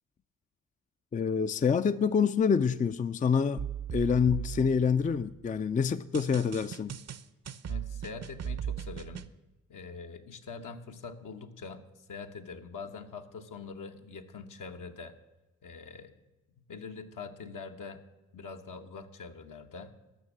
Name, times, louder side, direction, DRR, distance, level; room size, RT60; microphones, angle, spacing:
voice 1, 1.1-7.0, left 6 dB, 25° left, 0.4 m, -27 dB
sound 1, 3.6-5.4 6.1-9.3, right 9 dB, 50° right, 0.7 m, -38 dB
voice 2, 7.7-9.3 9.7-11.8 12.1-15.2 15.6-16.1 16.6-18.0 18.3-19.9, left 4 dB, 65° left, 1.2 m, -44 dB
12.5 x 6.2 x 7.3 m
supercardioid pair, 50°, 34 cm